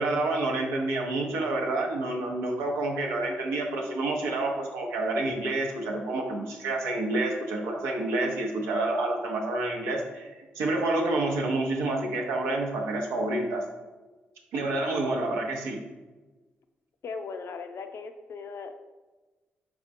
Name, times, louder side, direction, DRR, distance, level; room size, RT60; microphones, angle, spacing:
voice 1, 0.0-10.3 10.5-13.6 14.5-15.8, right 2 dB, 85° right, 0 dB, 0.6 m, -28 dB
voice 2, 17.0-18.8, left 4 dB, 60° left, 7 dB, 0.4 m, -38 dB
5.1 x 3.5 x 2.6 m, 1.2 s
supercardioid pair, 45°, 5 cm